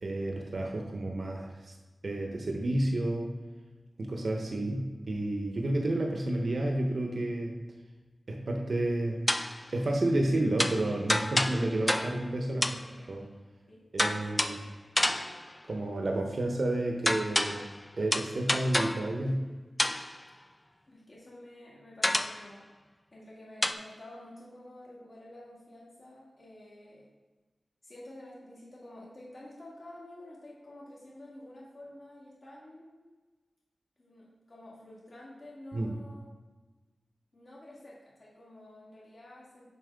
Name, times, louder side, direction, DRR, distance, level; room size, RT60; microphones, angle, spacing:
voice 1, 0.0-1.7 2.0-3.3 4.0-7.6 8.3-9.2 9.7-12.7 13.0-13.3 13.9-14.6 15.6-17.6 18.0-19.4 35.7-35.9, right 1 dB, 55° right, 2 dB, 0.9 m, -30 dB
sound 1, 9.3-9.7 10.6-12.3 12.6-12.9 14.0-14.7 15.0-15.5 17.1-17.8 18.1-19.1 19.8-20.2 22.0-22.5 23.6-23.7, left 1 dB, 15° left, 0.3 m, -29 dB
voice 2, 12.5-13.0 13.7-13.9 14.2-14.5 20.9-22.7 23.1-27.1 27.8-32.9 34.0-36.3 37.3-39.7, left 1 dB, 45° left, -6 dB, 2.2 m, -50 dB
7.5 x 5.8 x 3.5 m, 1.3 s
wide cardioid pair, 100°, 0 cm